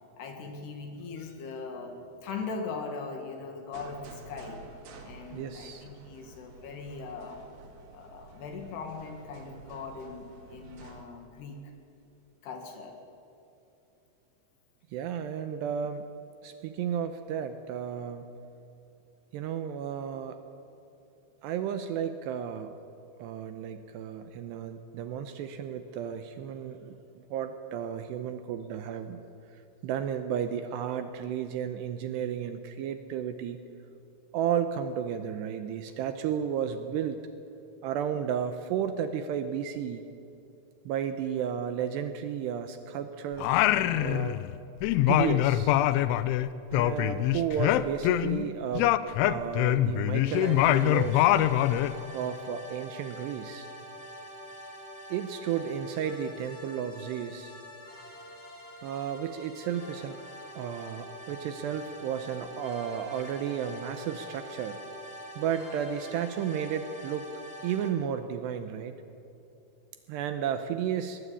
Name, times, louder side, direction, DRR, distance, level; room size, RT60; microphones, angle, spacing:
voice 1, 0.2-4.6 5.0-7.4 7.9-11.7 12.4-13.0, left 4 dB, 65° left, 4 dB, 3.8 m, -40 dB
sound 1, 3.7-11.0, right 4 dB, 60° right, 3.9 m, -51 dB
voice 2, 5.3-5.8 14.9-16.0 16.4-18.3 19.3-20.4 21.4-22.7 23.2-29.2 29.8-33.6 34.3-37.2 37.8-40.1 40.9-43.5 44.0-44.4 45.1-45.7 46.7-49.0 49.2-51.5 52.1-53.7 55.1-57.5 58.8-60.2 60.6-64.8 65.4-67.3 67.6-69.0 70.1-71.2, right 8 dB, 80° right, 8 dB, 2.7 m, -33 dB
Singing, 43.4-44.6 44.8-48.5 48.8-52.0, left 13 dB, 85° left, 3.0 m, -24 dB
sound 2, 50.3-67.9, equal, 30° left, 1.9 m, -45 dB
21.5 x 20.0 x 8.4 m, 2.8 s
omnidirectional pair, 5.5 m